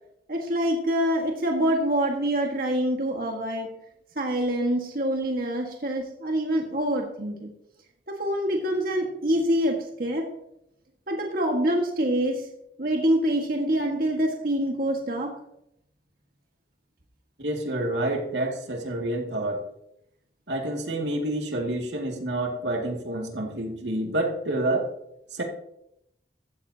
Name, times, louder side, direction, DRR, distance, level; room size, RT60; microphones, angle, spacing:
voice 1, 0.3-3.7 4.1-7.5 8.1-10.2 11.1-12.5 12.8-15.3, right 1 dB, 50° right, 1.7 m, -25 dB
voice 2, 17.4-19.6 20.5-24.9 25.3-25.4, right 1 dB, 80° right, 2.3 m, -28 dB
15.0 x 14.0 x 2.8 m
head